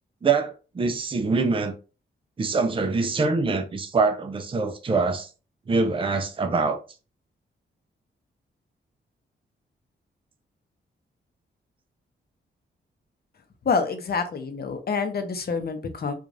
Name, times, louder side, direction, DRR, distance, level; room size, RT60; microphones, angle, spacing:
voice 1, 0.2-1.7 2.4-5.3 5.7-6.8, right 4 dB, 25° right, 0.5 m, -24 dB
voice 2, 13.6-16.1, left 5 dB, 50° left, 0.8 m, -27 dB
4.8 x 2.5 x 2.5 m
cardioid pair, 90°, 20 cm